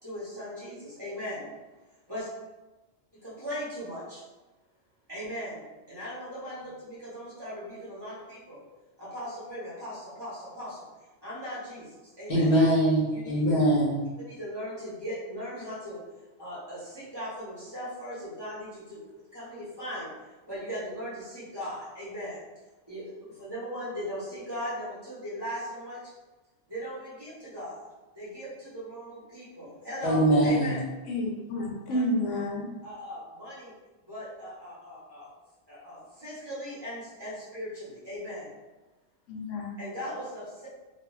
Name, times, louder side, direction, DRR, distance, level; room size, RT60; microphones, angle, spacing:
voice 1, 0.0-1.5 2.1-2.3 3.2-4.2 5.1-8.6 9.0-10.9 11.2-12.5 13.1-13.5 14.2-16.0 16.4-19.0 19.3-20.1 20.5-22.4 22.9-26.1 26.7-27.8 28.1-30.9 31.9-32.0 32.8-33.7 34.1-35.3 35.7-38.5 39.8-40.7, equal, 20° right, -11 dB, 0.9 m, -38 dB
voice 2, 12.3-14.0 30.0-30.8, right 1 dB, 55° left, -5 dB, 0.8 m, -22 dB
voice 3, 31.1-32.7 39.3-39.7, left 1 dB, 80° left, -1 dB, 1.0 m, -30 dB
2.4 x 2.3 x 3.1 m, 1.1 s
omnidirectional pair, 1.3 m